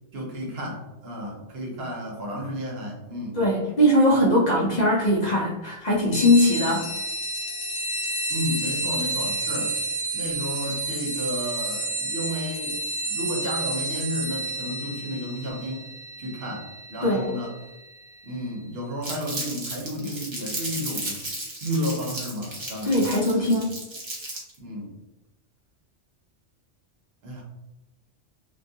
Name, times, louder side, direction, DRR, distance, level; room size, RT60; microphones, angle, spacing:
voice 1, 0.1-3.4 8.3-9.8 10.1-12.8 13.0-15.9 16.2-17.5 18.2-21.2 21.6-23.1 23.4-23.6 24.6-24.9 27.2-27.4, equal, 60° right, -1 dB, 0.9 m, -32 dB
voice 2, 3.3-6.9 17.0-17.3 22.8-23.7, left 1 dB, 50° left, -5 dB, 0.5 m, -20 dB
sound 1, 6.1-18.2, right 2 dB, 80° left, 1.0 m, -30 dB
Crumpling crinkling, 19.0-24.6, right 1 dB, 35° right, 0.5 m, -34 dB
2.3 x 2.3 x 2.6 m, 0.98 s
omnidirectional pair, 1.2 m